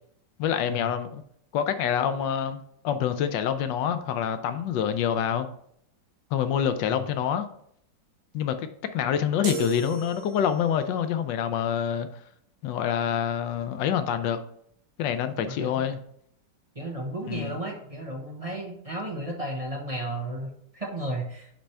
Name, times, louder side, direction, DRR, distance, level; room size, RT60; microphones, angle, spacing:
voice 1, 0.4-1.2 1.5-5.5 6.3-7.5 8.3-8.7 8.9-12.1 12.6-14.4 15.0-16.0 17.3-17.6, left 8 dB, 90° left, 9 dB, 1.3 m, -26 dB
sound 1, 9.4-10.8, right 7 dB, 60° right, 0.8 m, -35 dB
voice 2, 15.4-15.9 16.7-21.5, right 1 dB, 25° right, -2 dB, 0.9 m, -34 dB
7.6 x 3.5 x 4.3 m, 0.68 s
omnidirectional pair, 1.9 m